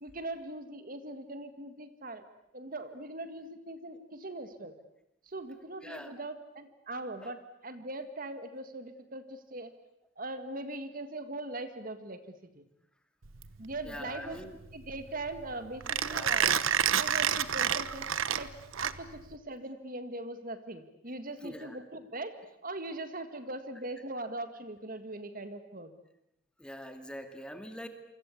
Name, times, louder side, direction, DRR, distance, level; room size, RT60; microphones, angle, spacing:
voice 1, 0.0-2.2 2.5-4.7 5.2-9.7 10.2-12.7 13.6-14.4 14.7-16.6 16.9-18.1 18.3-18.5 18.8-22.4 22.6-25.9, right 2 dB, 40° right, 10 dB, 1.9 m, -40 dB
voice 2, 5.8-6.1 7.2-7.3 13.8-14.6 16.0-16.4 21.4-21.8 26.6-27.9, equal, 5° left, 7 dB, 2.2 m, -43 dB
Mechanisms, 13.3-19.4, right 8 dB, 75° right, 1.1 m, -30 dB
28.0 x 25.0 x 8.5 m, 0.79 s
head